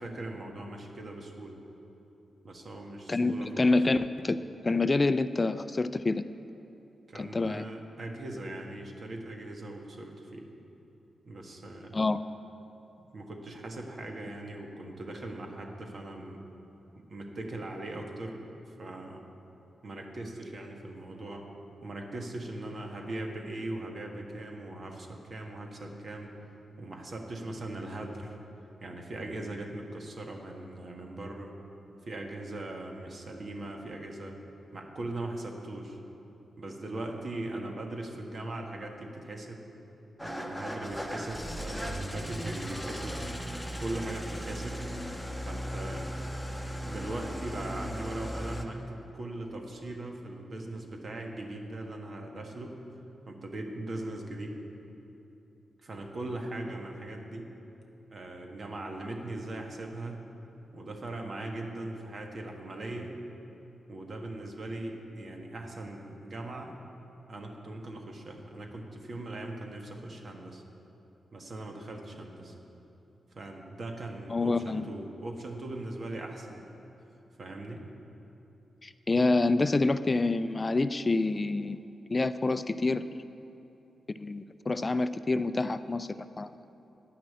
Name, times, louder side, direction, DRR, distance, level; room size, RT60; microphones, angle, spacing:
voice 1, 0.0-1.6 2.4-3.9 7.1-10.5 11.2-11.9 13.0-16.4 16.9-18.4 18.8-19.2 19.8-21.5 21.8-26.3 26.8-28.4 28.8-31.5 32.0-34.4 34.7-36.0 36.6-39.6 40.2-43.2 43.8-44.8 45.4-46.1 46.8-52.8 53.3-54.6 55.8-57.5 58.1-60.2 60.7-63.1 63.9-66.7 67.3-70.6 71.3-72.5 73.3-76.6 77.4-77.8, right 2 dB, 55° right, 2 dB, 1.6 m, -40 dB
voice 2, 3.1-6.2 7.2-7.7 11.9-12.2 74.3-74.9 78.8-81.8 82.1-83.1 84.1-86.1 86.4-86.5, left 3 dB, 35° left, 13 dB, 0.4 m, -27 dB
Engine starting / Idling, 40.2-48.6, equal, ahead, 1.3 m, -37 dB
10.0 x 6.1 x 8.6 m, 3.0 s
supercardioid pair, 40°, 0 cm